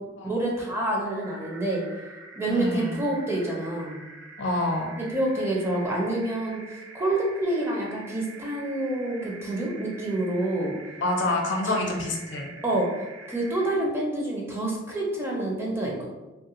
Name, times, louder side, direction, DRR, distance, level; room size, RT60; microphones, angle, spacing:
voice 1, 0.2-1.8 2.4-4.0 5.0-6.6 6.9-10.7 11.6-11.8 12.6-12.9 13.3-16.1, right 1 dB, 15° right, -2 dB, 0.4 m, -27 dB
sound 1, 1.0-13.8, right 3 dB, 85° right, 0.5 m, -46 dB
voice 2, 2.5-3.0 4.4-4.9 11.0-12.5, left 2 dB, 65° left, 1 dB, 0.6 m, -27 dB
3.0 x 2.3 x 2.9 m, 1.1 s
head